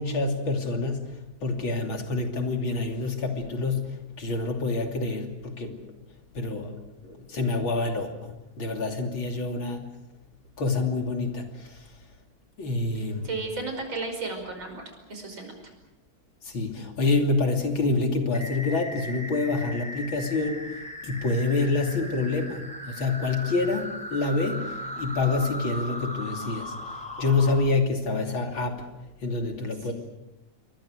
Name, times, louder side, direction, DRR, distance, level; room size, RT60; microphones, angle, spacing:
voice 1, 0.0-5.8 6.4-6.7 7.0-9.9 10.6-11.9 12.6-13.3 16.4-20.6 21.0-26.7 27.2-28.9 29.2-29.9, left 3 dB, 80° left, 3 dB, 3.7 m, -27 dB
voice 2, 13.0-14.8 15.1-15.5 29.8-29.9, right 3 dB, 75° right, 4 dB, 6.3 m, -34 dB
sound 1, 18.3-27.5, equal, 5° left, 5.8 m, -38 dB
28.5 x 23.5 x 6.5 m, 0.94 s
omnidirectional pair, 2.2 m